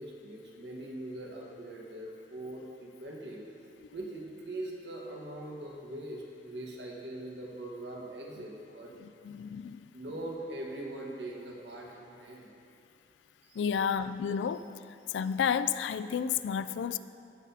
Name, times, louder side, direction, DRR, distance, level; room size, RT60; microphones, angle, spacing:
voice 1, 0.0-3.4 3.9-8.9 9.9-12.5 13.5-13.6, right 1 dB, 70° right, -2 dB, 1.4 m, -41 dB
voice 2, 9.0-9.9 13.6-14.6 15.1-17.0, left 7 dB, 85° left, 14 dB, 0.3 m, -31 dB
17.0 x 6.0 x 2.8 m, 2.5 s
head